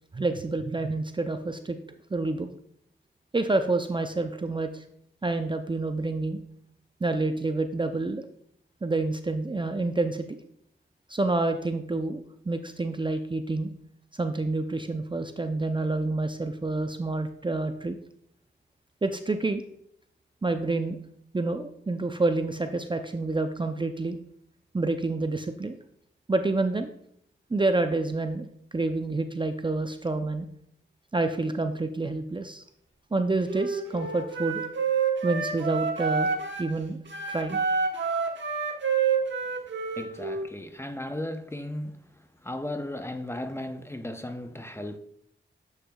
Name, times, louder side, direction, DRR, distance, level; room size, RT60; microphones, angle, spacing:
voice 1, 0.1-1.8 2.1-2.5 3.3-4.8 5.2-6.4 7.0-8.3 8.8-10.4 11.1-12.2 12.5-13.7 14.1-18.0 19.0-19.6 20.4-21.0 21.3-24.2 24.7-25.8 26.3-26.9 27.5-28.5 28.7-30.5 31.1-32.6 33.1-34.6 35.2-36.3 36.6-37.0 37.3-37.6, right 2 dB, 25° right, 0.5 m, -28 dB
Wind instrument woodwind instrument, 33.4-36.7 37.1-40.5, right 5 dB, 65° right, 1.2 m, -28 dB
voice 2, 40.0-45.0, left 1 dB, 10° left, 0.7 m, -36 dB
7.9 x 6.5 x 2.3 m
cardioid pair, 50°, 21 cm